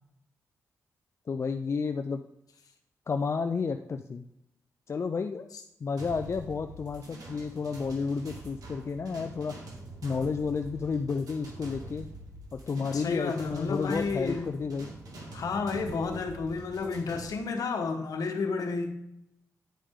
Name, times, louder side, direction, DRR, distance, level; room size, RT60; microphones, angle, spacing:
voice 1, 1.3-2.2 3.1-4.3 4.9-5.5 5.8-9.5 10.0-12.1 12.5-14.9, left 5 dB, 45° left, 7 dB, 0.4 m, -31 dB
sound 1, 6.0-17.3, right 1 dB, 75° right, 2.1 m, -45 dB
voice 2, 12.9-14.5 15.3-18.9, left 4 dB, 75° left, 5 dB, 1.2 m, -31 dB
10.0 x 5.2 x 3.6 m, 0.83 s
cardioid pair, 70°, 6 cm